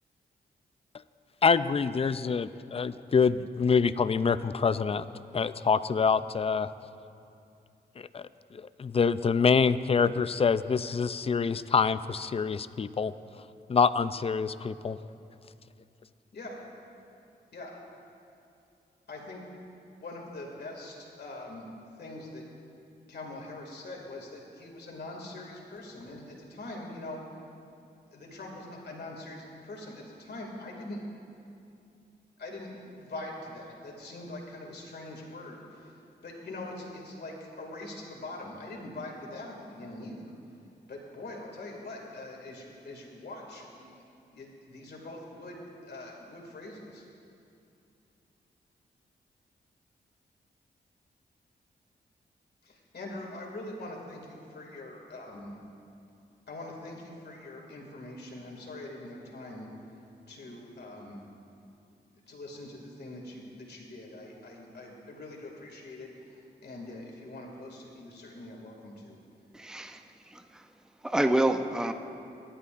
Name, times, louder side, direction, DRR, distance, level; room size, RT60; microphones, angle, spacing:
voice 1, 1.4-5.1 5.3-6.7 8.0-13.1 13.7-15.0, left 5 dB, 30° left, 14 dB, 0.4 m, -26 dB
voice 2, 19.1-19.4 20.0-21.7 21.9-22.4 23.1-27.2 28.1-31.0 32.4-40.3 40.9-43.9 44.3-47.1 52.6-55.6 56.5-59.7 60.3-61.2 62.3-69.2, left 2 dB, 60° left, -1 dB, 2.4 m, -43 dB
voice 3, 69.5-70.7 71.0-71.9, right 1 dB, 5° right, 7 dB, 0.7 m, -28 dB
18.0 x 11.5 x 2.6 m, 2.6 s
cardioid pair, 55°, 19 cm